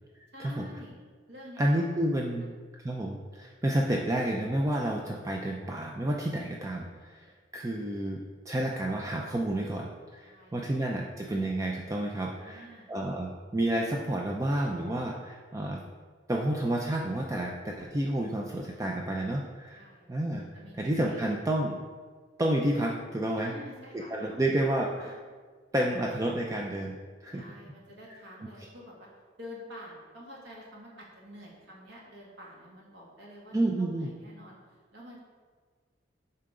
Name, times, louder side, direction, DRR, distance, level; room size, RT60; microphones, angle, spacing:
voice 1, 0.3-1.0 1.3-1.9 2.4-2.5 10.2-10.8 12.3-13.0 19.7-21.3 23.4-24.5 25.0-25.1 27.3-29.1 29.4-35.2, left 1 dB, 85° right, -4 dB, 2.1 m, -48 dB
voice 2, 1.6-2.5 2.8-8.2 8.5-15.8 16.3-19.8 20.1-20.5 20.7-21.8 22.4-23.5 23.9-25.2 25.7-27.5 33.5-34.1, right 1 dB, 15° right, 0 dB, 0.5 m, -30 dB
8.6 x 5.6 x 3.8 m, 1.5 s
head